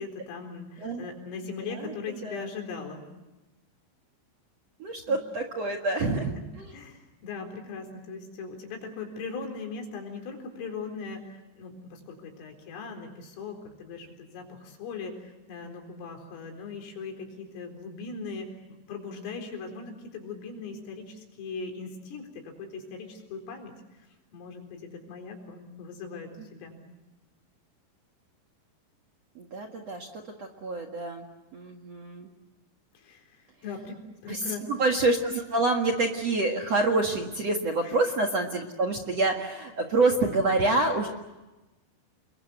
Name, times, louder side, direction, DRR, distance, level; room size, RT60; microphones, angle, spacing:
voice 1, 0.0-3.0 5.1-5.2 6.7-24.1 24.3-26.8 32.9-34.0 34.2-34.7 37.8-38.0, left 4 dB, 80° left, 3 dB, 6.7 m, -39 dB
voice 2, 4.8-6.7 29.3-31.3 31.5-32.3 34.3-41.1, right 2 dB, 60° right, 2 dB, 1.6 m, -27 dB
29.5 x 22.5 x 7.8 m, 1.1 s
omnidirectional pair, 5.8 m